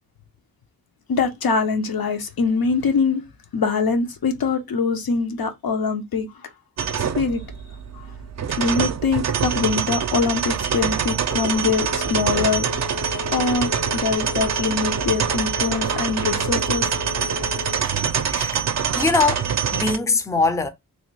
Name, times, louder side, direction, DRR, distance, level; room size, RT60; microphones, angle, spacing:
voice 1, 1.1-3.2 3.5-6.3 7.2-7.4 7.9-8.1 8.6-12.7 13.3-16.9, left 4 dB, 90° left, 0.7 m, -23 dB
sound 1, 6.8-20.0, right 7 dB, 50° right, 0.4 m, -25 dB
Telephone, 10.8-18.1, left 7 dB, 50° left, 0.6 m, -35 dB
voice 2, 15.6-16.3 17.8-18.0 18.3-20.7, left 4 dB, 10° left, 0.4 m, -24 dB
3.1 x 2.2 x 3.1 m
wide cardioid pair, 110°, 35 cm